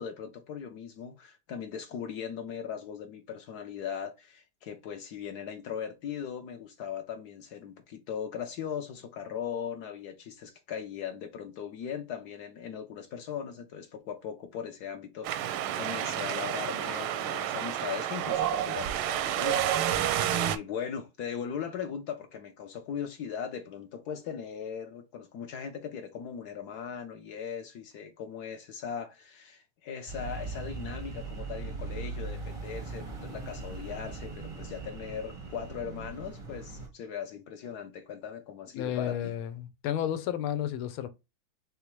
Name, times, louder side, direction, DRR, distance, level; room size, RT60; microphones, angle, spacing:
voice 1, 0.0-39.3, left 7 dB, 65° left, 1.0 m, -39 dB
Wind, 15.2-20.6, right 11 dB, 85° right, 1.4 m, -30 dB
sound 1, 30.1-36.9, right 3 dB, 40° right, 0.4 m, -40 dB
voice 2, 38.7-41.1, left 10 dB, 85° left, 1.5 m, -32 dB
4.2 x 3.5 x 3.0 m
omnidirectional pair, 2.2 m